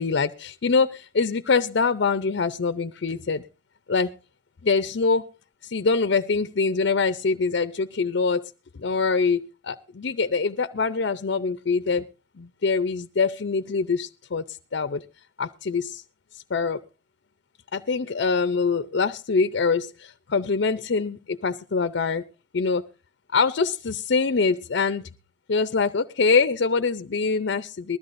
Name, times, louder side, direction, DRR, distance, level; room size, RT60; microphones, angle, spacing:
voice 1, 0.0-3.4 3.9-4.1 4.6-5.3 5.6-12.0 12.4-15.0 15.4-16.0 16.3-16.8 17.7-22.2 22.5-22.9 23.3-25.1 25.5-28.0, left 4 dB, 85° left, 11 dB, 0.6 m, -24 dB
20.5 x 13.5 x 2.6 m, 0.33 s
head